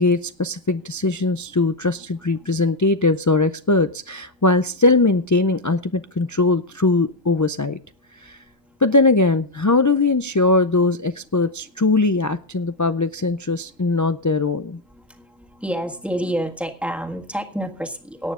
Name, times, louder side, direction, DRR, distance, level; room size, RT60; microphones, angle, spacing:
voice 1, 0.0-7.8 8.1-8.4 8.8-14.8, left 3 dB, 30° left, 10 dB, 0.3 m, -20 dB
voice 2, 15.6-18.3, right 1 dB, ahead, 2 dB, 1.6 m, -27 dB
18.0 x 9.5 x 3.7 m, 0.40 s
omnidirectional pair, 1.1 m